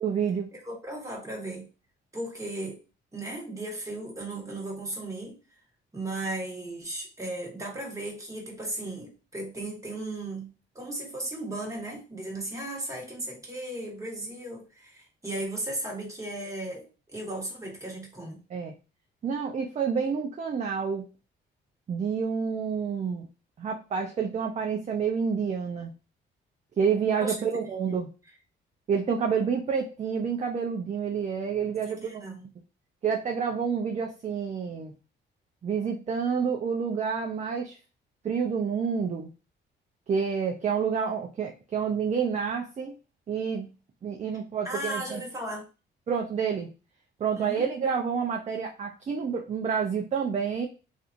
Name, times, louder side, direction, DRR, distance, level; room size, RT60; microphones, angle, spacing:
voice 1, 0.0-0.5 18.5-18.7 19.2-21.0 21.9-23.2 23.6-25.9 26.8-28.1 28.9-32.2 33.0-34.9 35.6-37.8 38.2-39.3 40.1-42.9 43.3-43.7 44.0-45.2 46.1-46.7 47.2-50.7, right 6 dB, 35° right, 2 dB, 0.5 m, -28 dB
voice 2, 0.5-1.7 2.1-2.8 3.1-5.4 5.9-10.5 10.7-18.4 27.2-27.5 31.9-32.5 44.6-45.6 47.4-47.7, right 1 dB, 15° right, -2 dB, 1.4 m, -36 dB
2.7 x 2.5 x 2.5 m, 0.32 s
cardioid pair, 90°, 20 cm